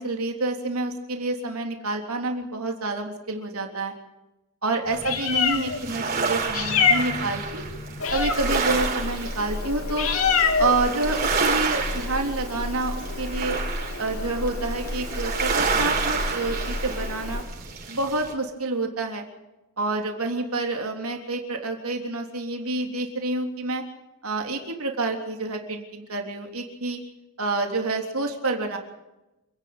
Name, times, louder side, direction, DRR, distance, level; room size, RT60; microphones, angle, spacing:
voice 1, 0.0-3.9 4.6-7.6 8.1-10.1 10.6-13.6 14.0-17.4 17.9-19.2 19.8-23.8 24.2-27.0 27.4-28.8, right 2 dB, 85° right, 3 dB, 3.5 m, -28 dB
Meow, 4.9-17.4, left 4 dB, 75° left, 2.9 m, -28 dB
Foggy beach - gentle waves, 4.9-18.3, right 4 dB, 40° right, 4.7 m, -30 dB
27.5 x 11.0 x 8.8 m, 0.98 s
head